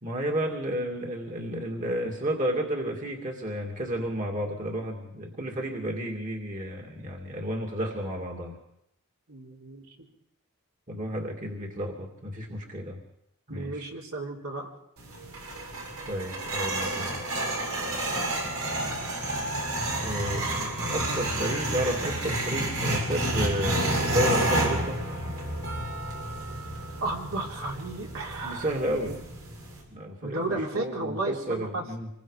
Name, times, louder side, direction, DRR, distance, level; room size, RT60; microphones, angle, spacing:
voice 1, 0.0-8.6 10.9-13.0 13.5-13.9 16.1-17.2 20.0-25.0 28.4-29.2 29.9-32.1, right 1 dB, 35° right, 1 dB, 2.4 m, -32 dB
voice 2, 9.3-9.8 13.5-14.7 27.0-28.7 29.1-29.2 30.2-31.8, right 2 dB, 70° right, -1 dB, 3.9 m, -33 dB
sound 1, 15.0-29.8, right 1 dB, 90° right, 7.3 m, -30 dB
26.5 x 22.0 x 5.0 m, 0.80 s
head